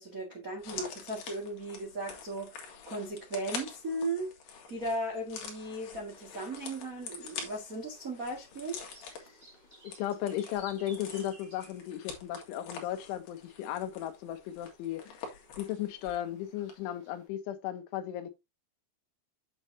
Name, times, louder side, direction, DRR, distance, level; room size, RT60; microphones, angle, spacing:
voice 1, 0.0-4.3 4.7-9.5, right 2 dB, 80° right, 0.7 m, -37 dB
sound 1, 0.6-16.3 16.6-16.7, left 6 dB, 60° left, 3.3 m, -46 dB
sound 2, 5.8-17.3, right 2 dB, 10° right, 3.3 m, -59 dB
voice 2, 9.8-18.3, left 12 dB, 85° left, 3.5 m, -36 dB
7.9 x 7.8 x 2.8 m
omnidirectional pair, 5.4 m